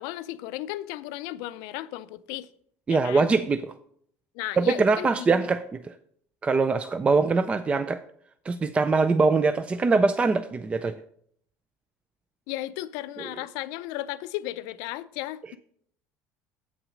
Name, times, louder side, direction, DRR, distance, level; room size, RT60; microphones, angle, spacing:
voice 1, 0.0-2.5 2.9-3.3 4.3-5.5 12.5-15.6, left 15 dB, 80° left, 0.4 m, -35 dB
voice 2, 2.9-3.7 4.6-5.9 6.4-8.0 8.5-11.0, right 4 dB, 20° right, 0.4 m, -23 dB
8.1 x 6.0 x 5.0 m
cardioid pair, 135°, 6 cm